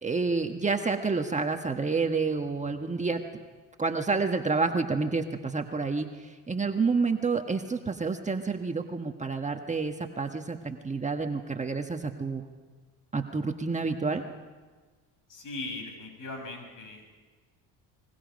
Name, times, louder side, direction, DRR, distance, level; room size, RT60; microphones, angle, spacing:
voice 1, 0.0-3.2 3.8-12.4 13.1-14.2, right 4 dB, 20° right, 4 dB, 1.4 m, -29 dB
voice 2, 15.3-17.1, left 2 dB, 55° left, 3 dB, 7.6 m, -39 dB
29.5 x 22.0 x 5.3 m, 1.4 s
supercardioid pair, 90°, 38 cm